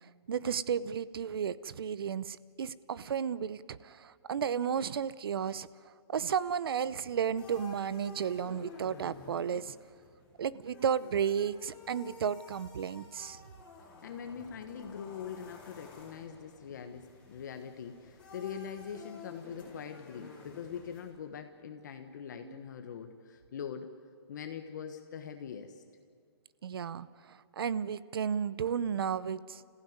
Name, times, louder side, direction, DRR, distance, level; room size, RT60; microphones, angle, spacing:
voice 1, 0.3-9.7 10.4-13.4 22.4-22.6 26.6-29.6, right 7 dB, 60° right, 18 dB, 0.7 m, -33 dB
sound 1, 7.0-21.1, left 4 dB, 10° left, 4.1 m, -52 dB
voice 2, 14.0-23.9 24.3-25.8, left 7 dB, 45° left, 6 dB, 1.3 m, -43 dB
28.0 x 15.5 x 9.5 m, 2.1 s
hypercardioid pair, 175°, 14 cm